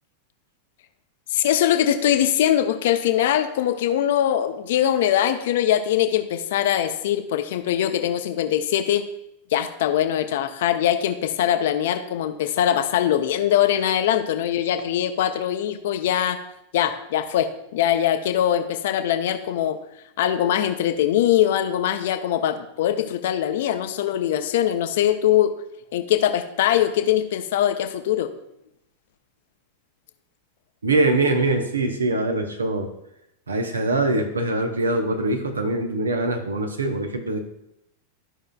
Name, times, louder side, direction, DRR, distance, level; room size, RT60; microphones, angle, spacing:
voice 1, 1.3-9.0 9.5-16.4 16.7-19.8 20.2-25.5 25.9-28.3, left 11 dB, 55° left, 9 dB, 0.6 m, -22 dB
voice 2, 30.8-32.9 33.5-37.4, right 2 dB, 75° right, 5 dB, 0.9 m, -23 dB
12.5 x 5.5 x 2.4 m, 0.82 s
figure-of-eight pair, 90°, 0 cm